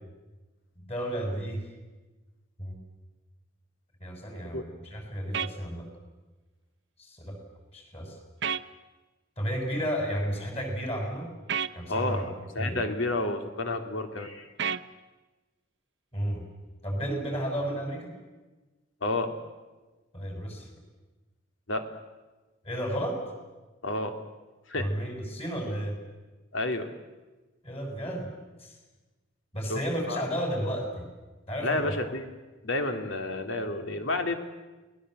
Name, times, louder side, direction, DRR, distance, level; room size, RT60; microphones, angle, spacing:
voice 1, 0.8-1.7 2.6-2.7 4.0-5.9 7.0-7.4 7.7-8.2 9.4-11.3 11.7-12.2 12.6-12.8 16.1-16.4 16.8-18.1 20.1-20.7 22.6-23.3 24.7-26.0 27.6-28.3 28.6-28.8 29.5-31.1 31.5-31.9, equal, 35° left, 3 dB, 6.5 m, -32 dB
sound 1, 5.3-5.5 8.4-8.6 11.5-11.7 14.6-14.8, right 7 dB, 65° right, 0.8 m, -29 dB
voice 2, 11.9-12.3 12.5-14.5 19.0-19.3 21.7-21.8 23.8-24.1 24.7-24.9 26.5-26.9 29.7-29.8 30.1-30.2 31.6-32.3 32.6-34.4, left 2 dB, 90° left, 6 dB, 2.6 m, -30 dB
28.5 x 19.5 x 7.8 m, 1.2 s
head